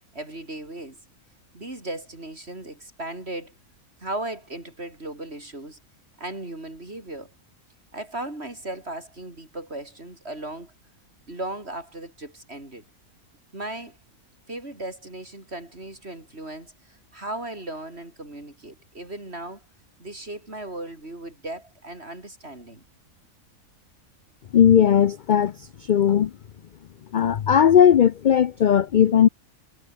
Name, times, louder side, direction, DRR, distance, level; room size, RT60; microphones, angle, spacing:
voice 1, 0.1-1.0 1.5-3.5 4.0-5.8 6.2-7.3 7.9-10.7 11.3-12.9 13.5-14.0 14.5-19.6 20.0-22.8, right 1 dB, 45° right, 6.1 m, -36 dB
voice 2, 24.5-26.3 27.1-29.3, left 9 dB, 70° left, 0.4 m, -17 dB
omnidirectional pair, 1.5 m